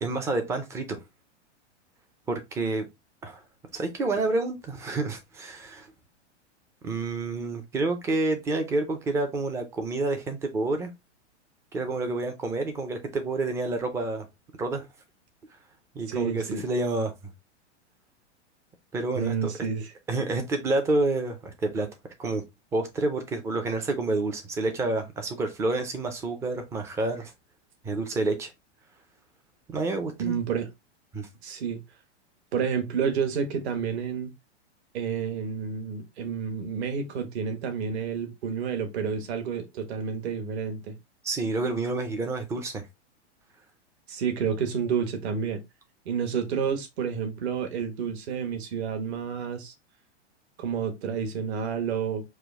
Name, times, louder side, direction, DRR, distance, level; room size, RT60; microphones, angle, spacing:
voice 1, 0.0-1.0 2.3-2.9 3.2-3.4 3.7-5.9 6.8-10.9 11.7-14.3 14.6-14.9 15.9-17.1 18.9-19.5 20.1-21.9 22.2-22.4 22.7-27.3 27.8-28.5 29.7-30.4 31.1-31.3 41.2-42.9, right 2 dB, 10° right, 0.3 m, -28 dB
voice 2, 16.1-16.6 19.1-19.9 30.2-30.7 31.4-31.8 32.5-34.3 34.9-40.9 44.1-45.6 46.0-49.7 50.6-52.2, right 6 dB, 65° right, 1.3 m, -30 dB
5.0 x 2.0 x 3.4 m
hypercardioid pair, 140°, 35 cm